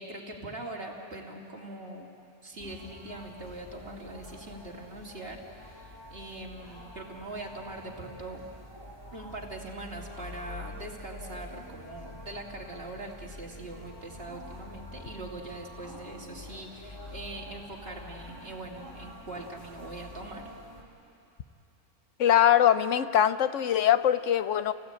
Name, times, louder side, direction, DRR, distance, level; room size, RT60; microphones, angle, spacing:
voice 1, 0.0-2.1 2.4-8.4 9.1-20.5, right 2 dB, 50° right, 0 dB, 2.8 m, -42 dB
sound 1, 2.6-20.8, left 1 dB, 20° left, 2.6 m, -46 dB
voice 2, 22.2-24.7, left 10 dB, 85° left, 13 dB, 1.1 m, -22 dB
29.0 x 17.5 x 8.8 m, 2.8 s
omnidirectional pair, 1.2 m